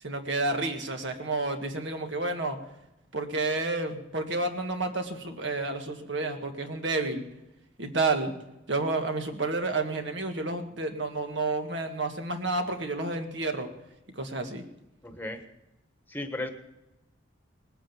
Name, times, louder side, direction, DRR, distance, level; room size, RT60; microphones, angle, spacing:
voice 1, 0.0-2.6 3.1-7.3 7.8-8.4 8.7-13.7 14.2-14.6, right 2 dB, 65° right, 5 dB, 1.7 m, -30 dB
voice 2, 15.0-15.4 16.1-16.5, left 1 dB, 10° left, 6 dB, 1.3 m, -35 dB
20.0 x 9.0 x 7.2 m, 0.94 s
head